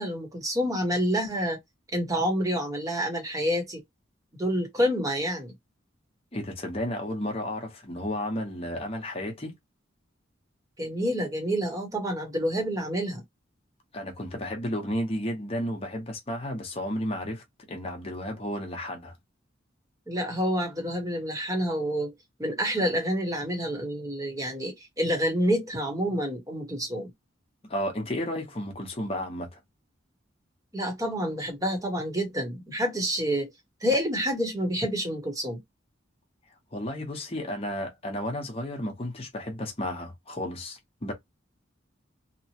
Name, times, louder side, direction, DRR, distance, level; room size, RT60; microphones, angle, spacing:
voice 1, 0.0-1.6 1.9-3.8 4.4-5.5 10.8-13.2 20.1-22.1 22.4-27.1 30.7-33.5 33.8-35.6, equal, 20° right, 1.0 m, -28 dB
voice 2, 6.3-9.5 13.9-19.1 27.6-29.6 36.7-41.1, left 1 dB, 30° left, 0.9 m, -33 dB
2.9 x 2.1 x 2.8 m
head